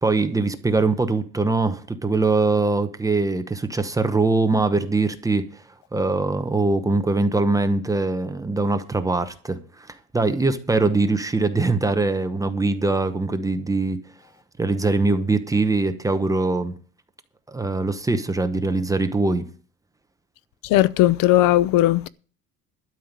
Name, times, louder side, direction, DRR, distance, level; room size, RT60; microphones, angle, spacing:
voice 1, 0.0-5.6 5.9-9.9 10.1-14.0 14.6-16.7 17.5-19.4, right 3 dB, 10° right, 0.9 m, -22 dB
voice 2, 20.6-22.1, left 15 dB, 75° left, 0.7 m, -17 dB
12.5 x 5.6 x 9.0 m
cardioid pair, 155°, 34 cm